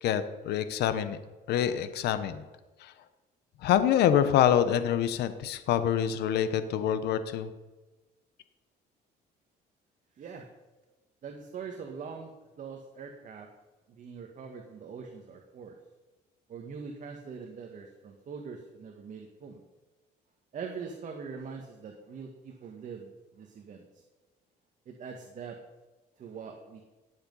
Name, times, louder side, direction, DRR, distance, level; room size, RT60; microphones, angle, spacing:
voice 1, 0.0-1.2 1.5-2.4 2.8-2.9 3.6-7.5, left 10 dB, 75° left, 11 dB, 1.1 m, -26 dB
voice 2, 10.2-10.5 11.2-13.5 13.9-15.8 16.5-19.6 20.5-23.8 24.9-25.6 26.2-26.9, right 5 dB, 50° right, 3 dB, 1.7 m, -43 dB
17.5 x 7.8 x 5.6 m, 1.2 s
cardioid pair, 110°, 17 cm